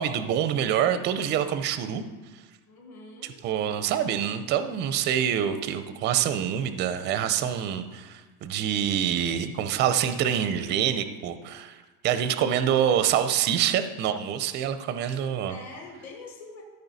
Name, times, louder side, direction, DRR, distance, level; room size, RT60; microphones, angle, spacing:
voice 1, 0.0-2.0 3.2-11.8 12.0-15.6, right 9 dB, 25° right, 10 dB, 0.4 m, -26 dB
voice 2, 2.7-3.4 8.7-9.2 15.5-16.6, left 2 dB, 40° left, -1 dB, 1.8 m, -44 dB
13.5 x 5.3 x 4.0 m, 1.2 s
supercardioid pair, 150°, 43 cm